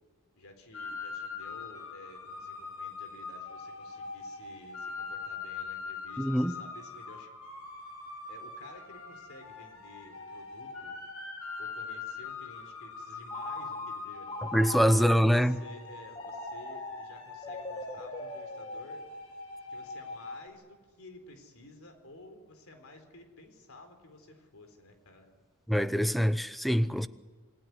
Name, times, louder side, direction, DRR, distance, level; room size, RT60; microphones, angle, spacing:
voice 1, 0.3-7.3 8.3-11.0 11.6-19.0 19.7-25.3, left 2 dB, 70° left, 4.3 m, -53 dB
sound 1, 0.7-20.5, left 4 dB, 90° left, 6.6 m, -42 dB
voice 2, 6.2-6.6 14.5-15.6 25.7-27.1, equal, ahead, 0.8 m, -24 dB
Telephone, 13.3-15.3 16.1-19.2, left 2 dB, 30° left, 2.4 m, -41 dB
28.5 x 19.5 x 9.7 m
head